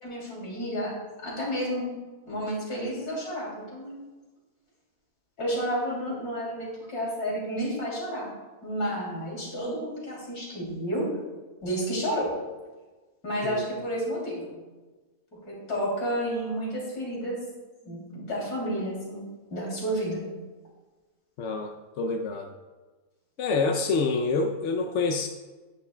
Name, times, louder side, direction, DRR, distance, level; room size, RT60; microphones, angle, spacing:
voice 1, 0.0-1.9 2.3-3.9 5.4-8.3 8.6-11.1 11.6-12.4 13.2-14.5 15.4-17.4 17.8-20.2, equal, 85° left, -4 dB, 3.3 m, -31 dB
voice 2, 21.4-22.5 23.4-25.3, left 4 dB, 65° left, 3 dB, 0.8 m, -27 dB
10.5 x 9.6 x 2.2 m, 1.3 s
omnidirectional pair, 1.6 m